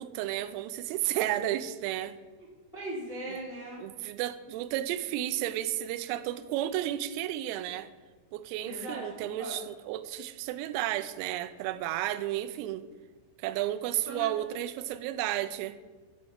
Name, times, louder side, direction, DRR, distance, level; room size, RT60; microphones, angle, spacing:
voice 1, 0.0-2.2 3.8-7.9 8.3-12.8 13.4-15.8, right 13 dB, 85° right, 12 dB, 3.3 m, -32 dB
voice 2, 2.7-3.8 8.6-9.6 14.0-14.3, right 1 dB, 25° left, -6 dB, 1.1 m, -39 dB
13.0 x 4.8 x 8.6 m, 1.3 s
omnidirectional pair, 6.0 m